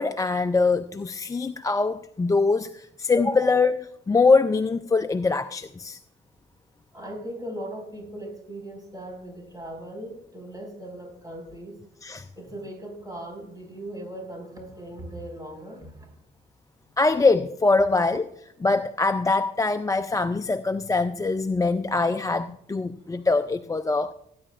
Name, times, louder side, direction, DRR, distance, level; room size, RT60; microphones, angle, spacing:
voice 1, 0.0-6.0 12.0-12.3 17.0-24.1, left 3 dB, 15° left, 0.4 m, -23 dB
voice 2, 6.9-11.8 12.4-16.1 23.1-23.2, right 1 dB, 20° right, 5.3 m, -39 dB
19.5 x 10.0 x 2.5 m
cardioid pair, 90°, 20 cm